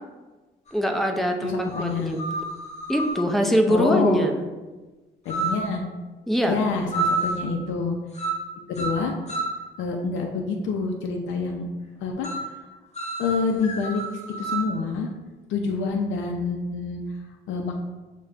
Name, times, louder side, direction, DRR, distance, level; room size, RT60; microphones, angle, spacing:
sound 1, 0.7-0.8 1.7-3.3 5.3-5.7 6.9-7.5 8.1-8.5 8.7-9.6 12.2-12.5 12.9-14.7, right 3 dB, 35° left, 0.8 m, -29 dB
voice 1, 0.7-1.5 1.8-2.2 2.9-4.3 6.3-6.6, equal, ahead, 3 dB, 0.4 m, -22 dB
voice 2, 1.4-2.2 3.7-4.2 5.3-5.9 6.5-8.0 8.6-9.1 9.8-11.7 12.0-12.6 13.2-14.0 14.4-15.1 15.5-17.2 17.5-17.8, left 4 dB, 75° left, 2 dB, 0.4 m, -27 dB
6.5 x 2.2 x 2.4 m, 1.2 s
cardioid pair, 90°, 20 cm